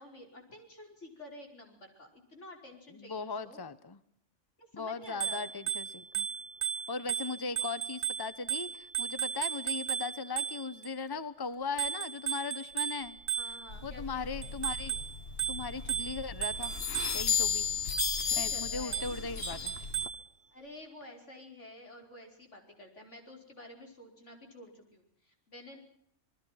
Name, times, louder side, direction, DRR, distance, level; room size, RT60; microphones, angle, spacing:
voice 1, 0.0-3.6 4.6-5.5 13.4-14.5 18.3-19.1 20.5-25.8, left 1 dB, 80° left, 3 dB, 5.4 m, -50 dB
voice 2, 2.9-4.0 4.7-6.3 6.9-13.2 13.8-15.1 15.5-16.7 17.1-17.7 18.3-19.7, left 4 dB, 20° left, 14 dB, 1.0 m, -38 dB
Bicycle bell, 5.1-10.9 11.8-13.9 14.4-17.4 18.0-18.4 18.9-20.3, right 9 dB, 70° right, 1.9 m, -36 dB
sound 1, 13.7-20.1, left 6 dB, 60° left, 1.4 m, -35 dB
27.5 x 21.0 x 5.8 m, 0.66 s
omnidirectional pair, 1.2 m